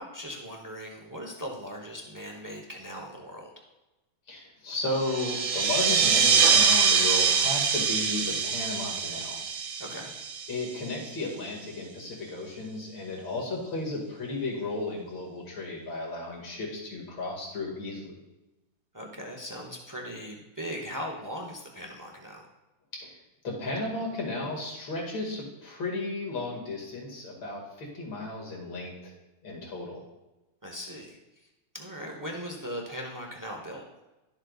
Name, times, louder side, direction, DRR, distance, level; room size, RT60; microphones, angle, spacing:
voice 1, 0.0-3.6 9.8-10.1 18.9-22.5 30.6-31.2 31.7-33.8, equal, 25° right, 1 dB, 0.4 m, -39 dB
voice 2, 4.3-9.4 10.5-18.2 23.0-23.1 23.4-29.1 29.4-30.0, left 2 dB, 75° left, -2 dB, 2.8 m, -34 dB
sound 1, 4.9-11.1, right 6 dB, 65° right, 1.3 m, -24 dB
12.0 x 7.4 x 2.4 m, 1.0 s
omnidirectional pair, 2.1 m